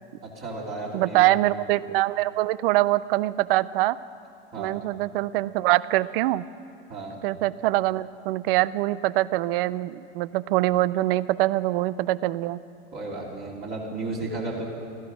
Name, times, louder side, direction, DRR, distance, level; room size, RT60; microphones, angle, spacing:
voice 1, 0.2-1.5 4.5-4.7 6.9-7.1 12.9-14.7, right 2 dB, 30° right, -4 dB, 2.5 m, -33 dB
voice 2, 0.9-4.0 4.6-6.4 7.2-12.6, right 17 dB, 55° right, 18 dB, 0.5 m, -24 dB
16.5 x 14.0 x 6.1 m, 2.7 s
supercardioid pair, 135°, 34 cm